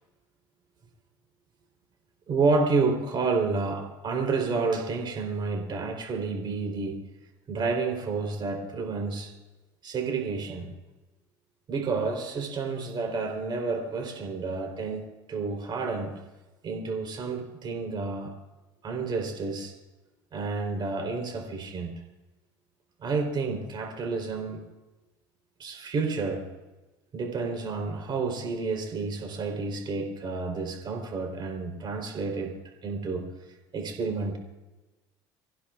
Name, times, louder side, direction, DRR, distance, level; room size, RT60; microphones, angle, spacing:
voice 1, 2.3-7.0 7.5-9.3 9.8-10.7 11.7-15.0 15.3-16.2 16.6-18.3 18.8-19.7 20.3-22.0 23.0-24.6 25.6-26.5 27.1-32.6 32.8-33.3 33.7-34.4, right 4 dB, 40° right, 3 dB, 4.0 m, -30 dB
26.5 x 15.5 x 2.5 m, 1.1 s
hypercardioid pair, 80°, 11 cm